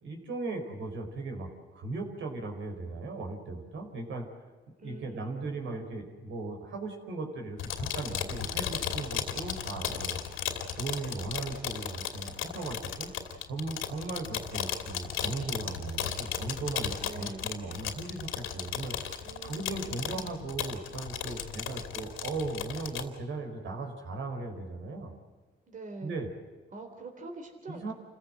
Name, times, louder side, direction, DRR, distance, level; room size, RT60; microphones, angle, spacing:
voice 1, 0.0-4.3 4.8-10.2 10.8-13.1 13.5-18.9 19.4-25.1 26.0-26.3 27.7-27.9, right 3 dB, 75° right, 3 dB, 4.8 m, -37 dB
voice 2, 4.8-5.9 17.0-17.5 19.2-20.4 25.7-26.2 26.7-27.9, right 3 dB, 40° right, 3 dB, 3.5 m, -45 dB
sound 1, 7.6-23.1, left 9 dB, 90° left, 2.6 m, -35 dB
28.5 x 15.5 x 7.8 m, 1.3 s
cardioid pair, 90°, 20 cm